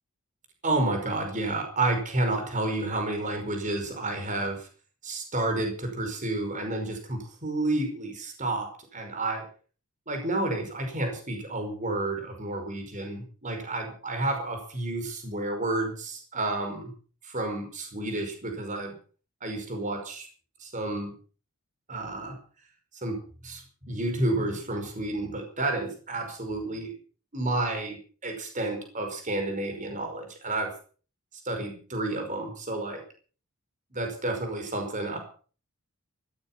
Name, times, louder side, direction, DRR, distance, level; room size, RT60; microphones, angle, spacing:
voice 1, 0.6-4.7 5.0-9.5 10.1-16.9 17.2-19.0 19.4-20.3 20.6-21.1 21.9-22.4 23.0-26.9 27.3-30.7 31.4-33.0 33.9-35.2, right 2 dB, 35° right, 4 dB, 5.3 m, -30 dB
15.5 x 14.0 x 5.9 m, 0.41 s
head